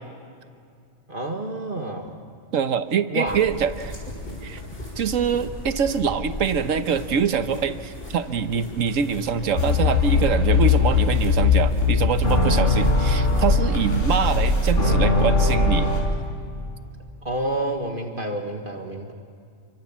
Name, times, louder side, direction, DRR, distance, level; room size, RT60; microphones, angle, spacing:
voice 1, 1.1-2.2 3.1-3.4 14.8-15.0 17.2-19.1, right 1 dB, 40° right, 2 dB, 2.0 m, -29 dB
voice 2, 2.5-3.9 4.4-4.6 5.0-16.0, right 6 dB, 75° right, 10 dB, 1.4 m, -24 dB
sound 1, 3.3-14.3, left 1 dB, 45° left, 6.5 m, -35 dB
sound 2, 9.6-16.0, left 3 dB, 70° left, 5.1 m, -20 dB
28.5 x 25.5 x 7.4 m, 2.4 s
omnidirectional pair, 1.4 m